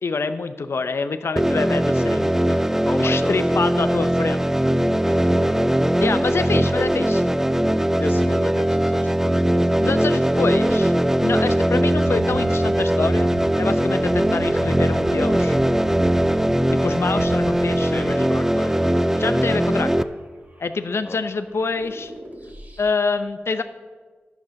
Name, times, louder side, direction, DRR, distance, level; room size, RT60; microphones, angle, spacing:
voice 1, 0.0-2.4 3.0-4.4 6.0-7.3 9.8-10.9 11.2-13.3 13.6-15.6 16.7-18.1 19.2-20.1 20.6-22.1 22.8-23.6, left 4 dB, 70° left, 11 dB, 0.7 m, -26 dB
sound 1, 1.4-20.0, right 1 dB, 10° right, 0.5 m, -20 dB
voice 2, 2.5-3.4 5.0-5.7 8.0-9.7 17.8-19.0 21.0-21.2, left 2 dB, 50° left, 4 dB, 1.2 m, -34 dB
sound 2, 8.8-22.9, right 2 dB, 45° right, 2.7 m, -39 dB
10.5 x 7.1 x 6.3 m, 1.4 s
cardioid pair, 40°, 5 cm